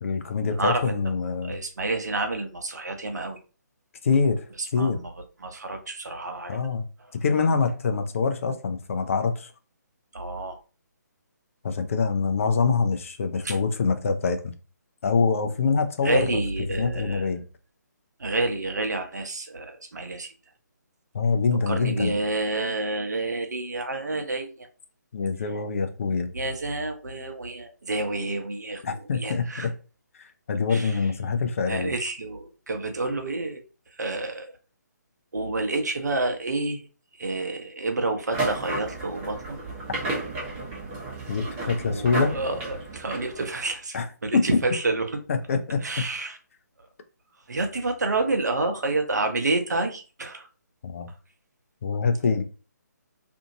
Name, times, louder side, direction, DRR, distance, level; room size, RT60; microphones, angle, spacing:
voice 1, 0.0-1.5 4.0-4.4 4.7-5.0 6.5-6.9 7.2-9.5 11.6-14.5 15.0-16.4 16.7-17.4 21.1-22.2 25.1-26.3 28.8-29.7 30.2-31.9 41.3-42.3 43.9-44.0 44.3-44.6 45.3-46.0 50.8-51.1 51.8-52.4, left 5 dB, 45° left, 7 dB, 0.5 m, -25 dB
voice 2, 0.5-1.0 1.4-3.4 4.7-5.0 5.4-6.6 10.1-10.6 13.4-13.6 16.0-17.3 18.2-20.3 21.7-24.7 26.3-28.8 29.2-29.7 30.7-31.0 31.7-33.6 34.0-34.5 35.3-36.8 37.2-39.6 41.9-45.2 45.8-46.4 47.5-50.5, right 2 dB, 70° right, 5 dB, 0.7 m, -29 dB
sound 1, 38.3-43.7, right 2 dB, 20° right, 1.0 m, -33 dB
2.6 x 2.5 x 2.7 m, 0.34 s
figure-of-eight pair, 140°, 10 cm